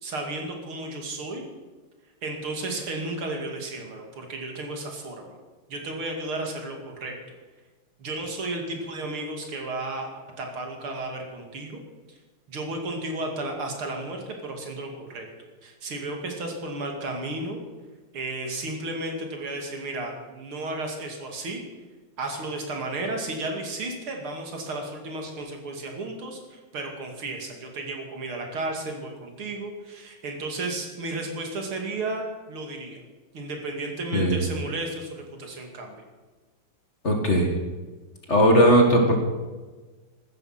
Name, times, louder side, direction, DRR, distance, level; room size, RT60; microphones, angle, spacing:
voice 1, 0.0-1.4 2.2-5.4 5.7-7.4 8.0-10.1 10.4-11.8 12.5-17.6 18.1-21.6 22.2-33.0 33.3-36.0, right 2 dB, 75° right, 2 dB, 3.3 m, -33 dB
voice 2, 37.0-37.5 38.3-39.2, equal, 35° left, 2 dB, 2.1 m, -18 dB
15.5 x 12.5 x 5.8 m, 1.3 s
omnidirectional pair, 2.4 m